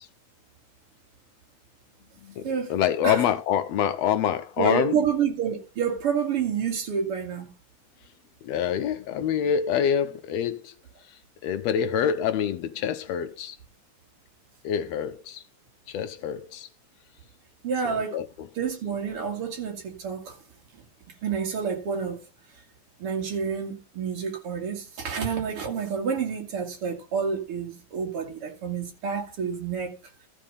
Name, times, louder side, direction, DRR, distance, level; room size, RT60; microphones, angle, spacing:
voice 1, 2.2-5.0 8.4-10.7 11.1-13.6 14.6-15.4 15.9-16.7 17.8-18.3, left 9 dB, 75° left, 1.6 m, -26 dB
voice 2, 4.6-7.5 17.6-18.2 18.6-20.4 20.7-20.8 21.2-22.2 23.0-30.0, right 6 dB, 50° right, 2.9 m, -29 dB
13.5 x 5.3 x 5.2 m
omnidirectional pair, 3.3 m